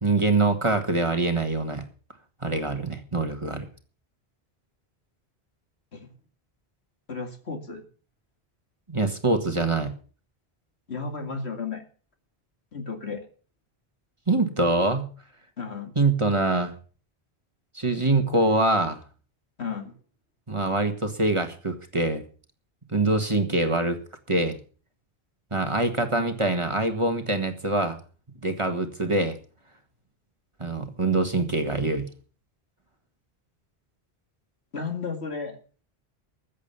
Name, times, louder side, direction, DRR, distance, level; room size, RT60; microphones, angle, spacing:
voice 1, 0.0-1.8 2.4-3.7 8.9-9.9 14.3-15.1 16.0-16.7 17.7-19.0 20.5-22.2 22.9-24.0 24.3-24.6 25.5-28.0 28.4-29.4 30.6-32.1, right 2 dB, 30° right, 7 dB, 1.7 m, -24 dB
voice 2, 7.1-7.8 10.9-11.8 12.7-13.3 15.6-15.9 19.6-20.0 26.2-26.3 34.7-35.6, left 4 dB, 75° left, 5 dB, 2.5 m, -33 dB
14.5 x 8.5 x 6.9 m, 0.39 s
omnidirectional pair, 1.1 m